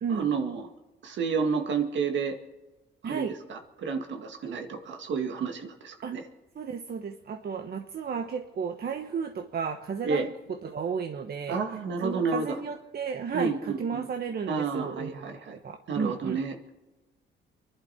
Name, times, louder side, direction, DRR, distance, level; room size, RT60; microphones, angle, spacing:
voice 1, 0.1-0.6 1.0-2.4 3.0-3.2 3.5-6.2 10.0-10.3 11.5-12.6 13.3-14.0 14.5-15.6 15.9-16.6, right 5 dB, 70° right, 5 dB, 2.1 m, -30 dB
voice 2, 3.0-3.3 6.0-6.1 6.5-11.6 12.0-16.4, right 6 dB, 50° right, 5 dB, 1.1 m, -33 dB
24.0 x 11.5 x 4.4 m, 1.1 s
cardioid pair, 90°, 20 cm